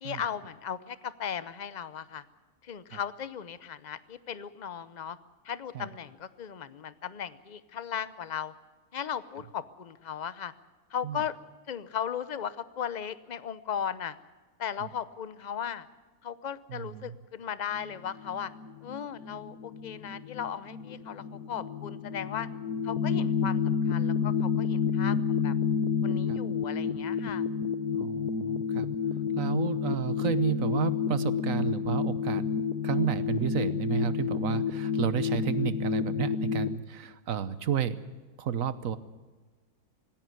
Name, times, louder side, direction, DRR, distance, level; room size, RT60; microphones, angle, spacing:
voice 1, 0.0-2.2 2.6-5.2 5.4-8.5 8.9-10.5 10.9-11.3 11.7-14.2 14.6-15.9 16.2-18.5 18.8-22.5 22.8-25.5 26.0-27.4, left 8 dB, 40° left, 15 dB, 0.7 m, -37 dB
voice 2, 16.7-17.2 26.3-26.4 28.0-28.9 29.3-32.5 32.8-38.1 38.4-39.0, right 9 dB, 65° right, 14 dB, 1.3 m, -31 dB
sound 1, 17.7-36.8, left 6 dB, 85° left, 1.4 m, -30 dB
19.0 x 16.5 x 9.5 m, 1.3 s
omnidirectional pair, 1.6 m